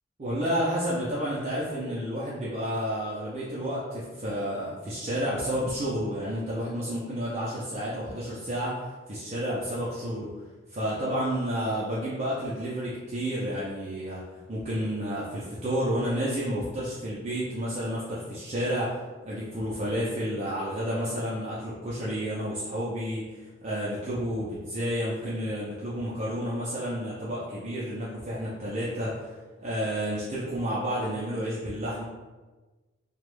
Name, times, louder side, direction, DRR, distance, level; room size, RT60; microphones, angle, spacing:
voice 1, 0.2-8.8 9.1-10.3 10.7-14.2 14.5-32.0, equal, 35° right, -8 dB, 0.4 m, -30 dB
2.2 x 2.0 x 3.0 m, 1.2 s
head